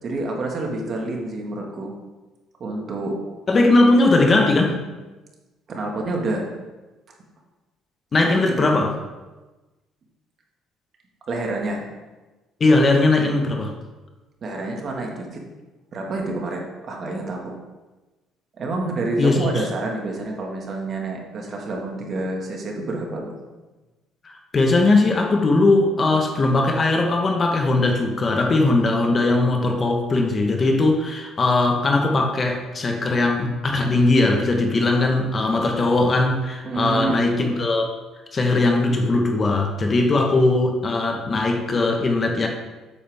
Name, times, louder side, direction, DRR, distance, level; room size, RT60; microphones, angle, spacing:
voice 1, 0.0-1.9 2.6-3.2 5.7-6.5 8.2-8.9 11.3-11.8 14.4-15.4 15.9-17.6 18.6-23.3 36.6-37.2, right 2 dB, 45° right, 0 dB, 1.9 m, -28 dB
voice 2, 3.5-4.8 8.1-8.9 12.6-13.7 19.2-19.6 24.2-37.9 38.3-42.5, left 2 dB, 35° left, 3 dB, 1.2 m, -19 dB
8.5 x 7.3 x 3.6 m, 1.2 s
cardioid pair, 100°, 0 cm